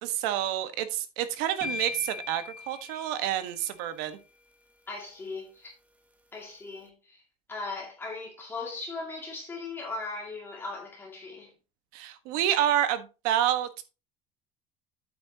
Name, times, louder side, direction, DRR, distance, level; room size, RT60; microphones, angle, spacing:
voice 1, 0.0-4.2 11.9-13.8, right 11 dB, 80° right, 1.3 m, -28 dB
sound 1, 1.6-3.7, left 5 dB, 10° right, 1.0 m, -39 dB
voice 2, 4.9-5.7 6.3-7.2 7.5-11.5, left 3 dB, 15° left, 2.3 m, -38 dB
8.7 x 8.6 x 2.8 m
cardioid pair, 155°, 14 cm